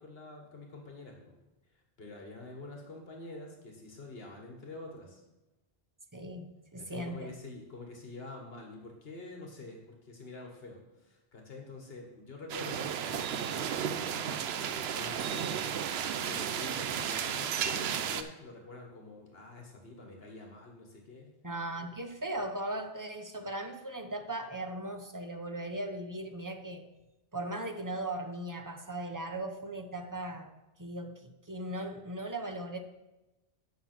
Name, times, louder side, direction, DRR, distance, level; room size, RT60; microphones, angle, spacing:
voice 1, 0.0-1.3 1.7-5.2 6.8-15.6 16.2-21.3 21.8-21.9, left 2 dB, 70° left, 1 dB, 1.6 m, -47 dB
voice 2, 6.1-7.3 21.4-26.8 27.3-30.5 30.8-32.8, right 1 dB, 20° right, 5 dB, 0.7 m, -38 dB
sound 1, 12.5-18.2, right 8 dB, 85° right, 0.9 m, -33 dB
9.2 x 5.7 x 6.0 m, 1.0 s
omnidirectional pair, 1.0 m